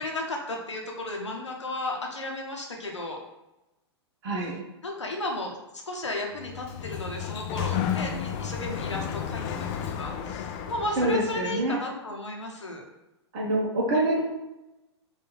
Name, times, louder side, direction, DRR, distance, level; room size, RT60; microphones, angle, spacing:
voice 1, 0.0-3.2 4.8-5.5 5.9-9.6 9.8-12.8, left 2 dB, 80° left, 1 dB, 0.9 m, -34 dB
voice 2, 4.2-4.5 11.0-11.8 13.3-14.2, right 1 dB, 45° right, -3 dB, 1.0 m, -25 dB
Sliding door, 6.4-11.5, left 8 dB, 35° left, 0.4 m, -32 dB
4.3 x 2.6 x 3.9 m, 0.96 s
figure-of-eight pair, 105°, 15 cm